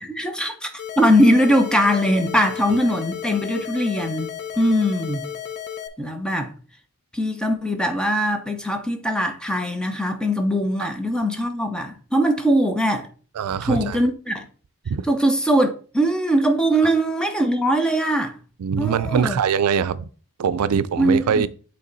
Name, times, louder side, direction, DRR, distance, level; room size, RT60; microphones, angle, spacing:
voice 1, 0.0-0.7 1.0-5.3 6.0-6.5 7.1-13.1 13.6-14.4 15.1-18.4 18.8-19.4 21.0-21.5, equal, 5° left, 0.7 m, -21 dB
sound 1, 0.8-5.9, left 9 dB, 50° left, 0.7 m, -33 dB
voice 2, 13.4-14.0 14.9-15.0 18.6-20.1 20.4-21.5, right 7 dB, 85° right, 0.4 m, -22 dB
8.4 x 3.4 x 4.0 m
head